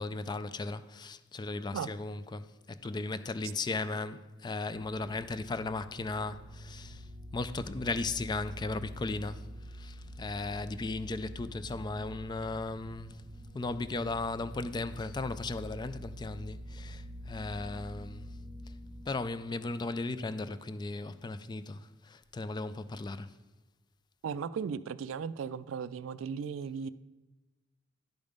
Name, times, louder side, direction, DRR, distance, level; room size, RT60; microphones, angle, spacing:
voice 1, 0.0-7.0 7.3-9.4 9.7-13.2 13.5-18.3 19.1-23.3, left 3 dB, 20° left, 0.3 m, -36 dB
sound 1, 4.7-19.0, equal, 35° right, 0.8 m, -46 dB
voice 2, 24.2-26.9, right 6 dB, 80° right, 0.3 m, -36 dB
10.5 x 5.3 x 5.2 m
head